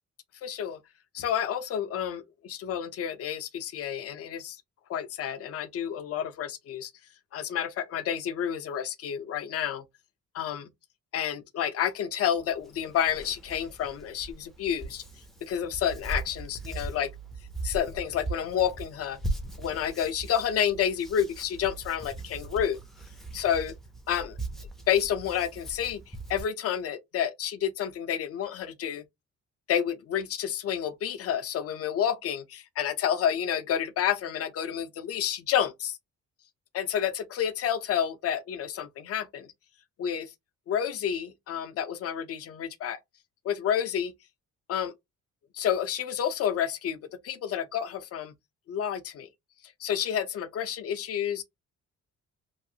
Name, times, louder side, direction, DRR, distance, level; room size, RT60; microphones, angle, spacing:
voice 1, 0.4-0.8 1.1-4.6 4.9-6.9 7.3-9.8 10.3-10.7 11.1-15.0 15.4-17.1 17.6-19.2 19.6-22.8 23.3-23.7 24.1-24.4 24.9-29.0 29.7-36.0 36.7-39.5 40.0-40.3 40.7-43.0 43.4-44.1 44.7-44.9 45.5-48.3 48.7-49.3 49.8-51.4, left 9 dB, 55° left, 0.5 m, -30 dB
Hands, 12.4-26.4, right 2 dB, ahead, 0.4 m, -39 dB
3.0 x 2.4 x 2.7 m
cardioid pair, 160°, 29 cm